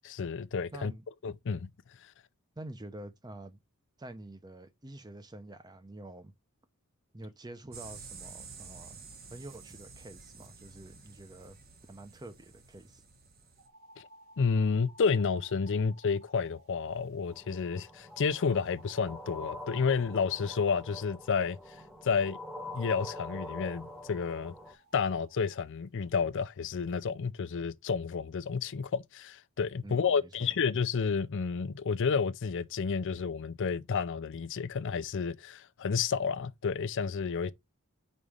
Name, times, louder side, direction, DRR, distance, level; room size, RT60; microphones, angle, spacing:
voice 1, 0.0-0.9 1.2-1.7 2.0-2.1 14.0-14.1 14.4-21.6 22.0-22.4 22.7-24.5 24.9-37.5, left 5 dB, 55° left, 0.5 m, -30 dB
voice 2, 0.7-1.1 2.6-3.6 4.0-6.3 7.1-9.0 9.3-11.6 11.9-13.0 29.8-30.6, right 1 dB, 20° right, 0.7 m, -47 dB
sound 1, 7.7-13.7, right 5 dB, 45° right, 1.3 m, -50 dB
sound 2, 13.5-17.4 18.1-21.4 22.4-25.7, right 1 dB, 70° right, 1.7 m, -58 dB
sound 3, 17.3-24.7, left 2 dB, ahead, 1.1 m, -45 dB
5.3 x 4.1 x 4.9 m
head